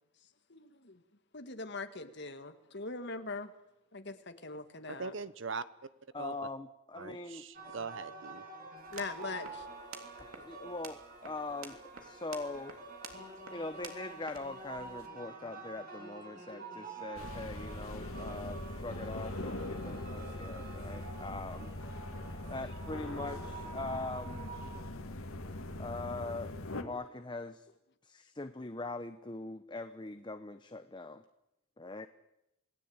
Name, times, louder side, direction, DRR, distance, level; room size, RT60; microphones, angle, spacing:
voice 1, 0.5-1.0 1.3-3.5 3.9-5.1 8.9-9.7 10.6-10.7 16.5-16.7 20.1-20.6, left 3 dB, 55° left, 8 dB, 2.0 m, -42 dB
voice 2, 4.9-5.9 6.2-6.3 7.0-8.4, right 4 dB, 60° right, 15 dB, 1.0 m, -41 dB
voice 3, 6.1-7.4 10.2-12.8 13.5-21.7 22.5-24.5 25.8-27.7 28.0-31.2 31.8-32.1, left 2 dB, 20° left, 9 dB, 0.9 m, -42 dB
sound 1, 7.5-24.8, right 3 dB, 40° right, 7.3 m, -48 dB
sound 2, 8.8-15.1, right 5 dB, 85° right, 3.3 m, -52 dB
sound 3, 17.2-26.8, left 1 dB, 80° left, 2.1 m, -41 dB
27.5 x 19.0 x 8.9 m, 0.89 s
head